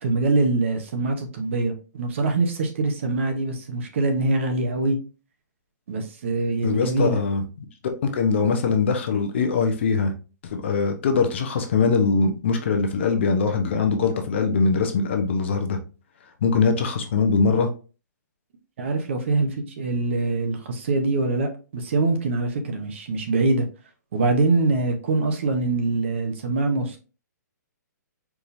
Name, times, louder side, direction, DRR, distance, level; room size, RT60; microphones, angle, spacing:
voice 1, 0.0-5.0 5.9-7.2 18.8-23.6 24.1-27.0, right 3 dB, 40° right, 0.9 m, -24 dB
voice 2, 6.6-7.4 8.0-10.1 10.5-15.8 16.4-17.7, left 4 dB, 40° left, 0.8 m, -22 dB
4.6 x 3.6 x 2.6 m
hypercardioid pair, 175°, 10 cm